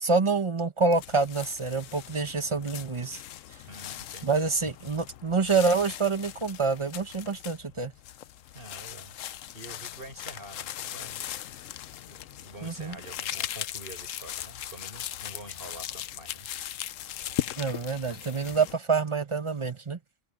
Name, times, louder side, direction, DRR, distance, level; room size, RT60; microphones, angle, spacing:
voice 1, 0.0-3.2 4.2-7.9 12.6-13.0 17.6-20.0, right 4 dB, 25° right, 1.2 m, -27 dB
sound 1, 0.9-18.7, left 12 dB, 85° left, 1.0 m, -39 dB
voice 2, 3.7-4.6 4.9-5.0 8.5-9.2 9.5-11.7 12.1-16.5, right 1 dB, 45° right, 5.8 m, -46 dB
open air
omnidirectional pair, 1.3 m